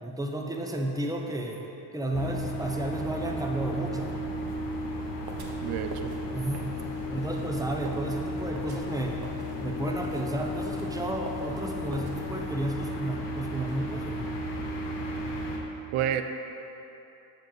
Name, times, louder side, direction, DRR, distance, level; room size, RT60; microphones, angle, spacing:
voice 1, 0.0-1.6 1.9-4.2 6.3-6.6 7.1-9.2 9.6-14.3, right 1 dB, 5° right, 1 dB, 0.8 m, -32 dB
sound 1, 2.1-15.6, equal, 60° left, 1.3 m, -34 dB
sound 2, 5.2-12.7, right 3 dB, 45° right, 0.9 m, -46 dB
voice 2, 5.6-6.2 15.9-16.2, right 10 dB, 85° right, 8 dB, 0.6 m, -29 dB
7.3 x 7.2 x 3.9 m, 3.0 s
cardioid pair, 75°, 50 cm